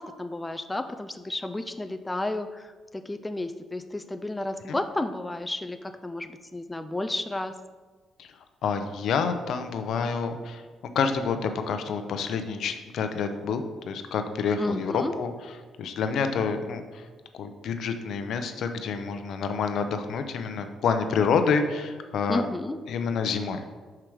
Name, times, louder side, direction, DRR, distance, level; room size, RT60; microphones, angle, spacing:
voice 1, 0.0-7.6 14.6-15.1 22.3-22.8, left 2 dB, 15° left, 8 dB, 0.4 m, -32 dB
voice 2, 8.6-10.6 10.9-15.3 15.8-17.1 17.3-22.4 22.9-23.7, left 5 dB, 70° left, 8 dB, 0.6 m, -28 dB
5.8 x 4.9 x 4.6 m, 1.4 s
cardioid pair, 80°, 0 cm